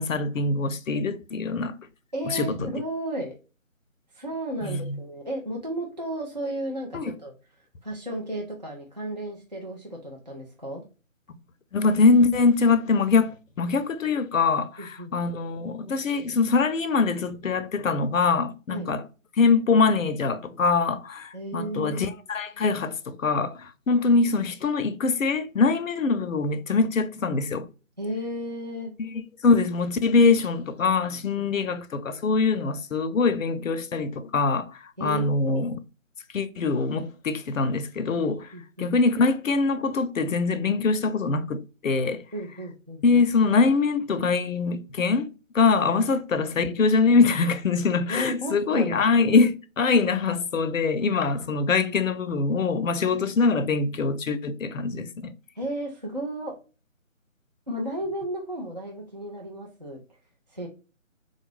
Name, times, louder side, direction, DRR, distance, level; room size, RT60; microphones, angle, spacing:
voice 1, 0.0-1.8 2.3-2.7 4.6-5.0 6.9-7.1 11.7-19.0 19.4-27.7 29.0-35.8 36.3-38.5 38.8-42.2 43.0-55.3, left 4 dB, 75° left, 0.6 m, -23 dB
voice 2, 2.1-3.3 4.1-7.3 7.8-10.8 14.8-15.1 18.7-18.9 21.3-22.1 28.0-28.9 31.4-31.5 35.0-35.6 38.5-38.9 42.3-43.2 48.1-49.1 55.6-56.5 57.7-60.0 60.5-60.7, right 1 dB, 35° right, 0.4 m, -33 dB
3.9 x 2.4 x 3.1 m
figure-of-eight pair, 170°, 40 cm